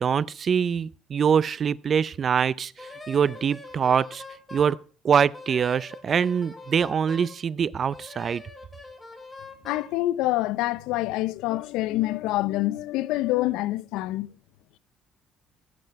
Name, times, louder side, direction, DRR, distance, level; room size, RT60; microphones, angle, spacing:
voice 1, 0.0-4.2 4.5-4.8 5.0-8.4, right 7 dB, 45° right, 0.5 m, -24 dB
Wind instrument woodwind instrument, 2.8-4.8 5.3-7.4 7.9-9.9, left 2 dB, 15° left, 2.8 m, -43 dB
voice 2, 9.6-14.3, left 17 dB, 85° left, 0.5 m, -26 dB
17.5 x 7.8 x 4.6 m
cardioid pair, 100°, 0 cm